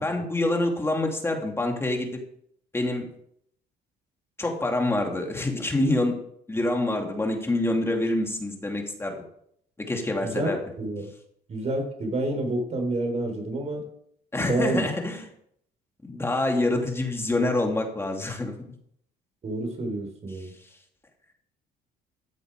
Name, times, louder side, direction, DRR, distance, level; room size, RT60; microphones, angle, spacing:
voice 1, 0.0-2.2 2.7-3.1 4.4-6.2 6.5-9.2 9.8-10.6 14.3-15.2 16.1-18.5, left 2 dB, 15° left, 2 dB, 2.6 m, -26 dB
voice 2, 10.2-11.1 11.5-13.8 14.4-14.9 19.4-20.5, right 2 dB, 40° right, 4 dB, 4.1 m, -29 dB
13.5 x 8.0 x 4.9 m, 0.68 s
cardioid pair, 110°, 17 cm